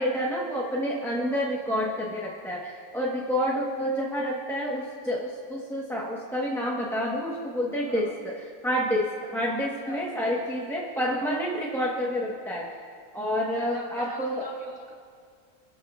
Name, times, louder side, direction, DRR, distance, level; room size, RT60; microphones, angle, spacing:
voice 1, 0.0-12.8 13.1-14.5, equal, ahead, -4 dB, 1.0 m, -29 dB
voice 2, 7.8-8.1 9.6-10.1 13.6-14.9, equal, 15° right, -4 dB, 2.5 m, -42 dB
28.5 x 13.5 x 2.4 m, 2.1 s
omnidirectional pair, 1.5 m